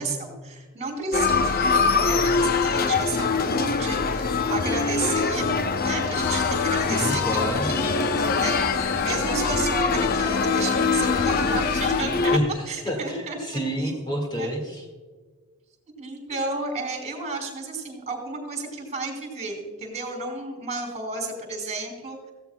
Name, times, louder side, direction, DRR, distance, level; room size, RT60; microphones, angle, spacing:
voice 1, 0.0-5.5 5.8-8.0 8.4-12.4 12.7-13.6 14.4-14.5 16.0-22.3, right 3 dB, 30° right, 3 dB, 3.0 m, -32 dB
sound 1, 1.1-12.4, left 4 dB, 40° left, 0.6 m, -23 dB
sound 2, 6.2-12.1, left 10 dB, 90° left, 0.4 m, -33 dB
voice 2, 6.9-7.7 12.3-12.4 12.8-14.9, equal, 20° left, 1 dB, 1.9 m, -28 dB
17.0 x 15.5 x 2.2 m, 1.4 s
head